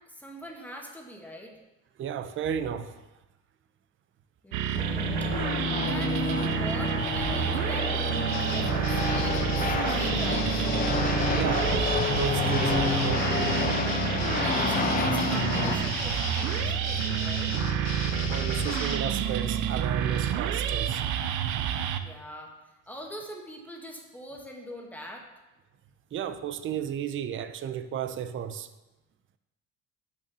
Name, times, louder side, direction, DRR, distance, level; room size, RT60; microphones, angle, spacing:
voice 1, 0.1-1.5 4.4-5.1 5.8-10.6 14.4-17.5 22.0-22.6 22.9-25.3, equal, 5° left, 1.6 m, -42 dB
voice 2, 2.0-3.0 11.3-13.6 18.3-21.0 26.1-28.7, right 8 dB, 40° right, 0.6 m, -33 dB
sound 1, 4.5-22.0, right 10 dB, 80° right, 0.7 m, -29 dB
sound 2, 4.7-15.8, left 4 dB, 30° left, 1.0 m, -29 dB
sound 3, 8.3-19.0, left 6 dB, 60° left, 1.2 m, -36 dB
6.4 x 6.1 x 6.1 m
cardioid pair, 105°, 30 cm